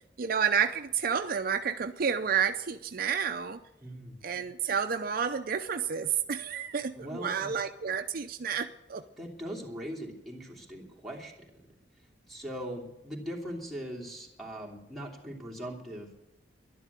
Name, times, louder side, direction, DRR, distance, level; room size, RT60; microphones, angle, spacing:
voice 1, 0.2-3.6 4.2-9.0, right 7 dB, 55° right, 8 dB, 0.5 m, -30 dB
voice 2, 3.8-4.2 7.0-7.5 9.2-11.5 12.3-16.2, equal, ahead, -4 dB, 2.9 m, -40 dB
12.0 x 11.0 x 8.2 m, 0.90 s
head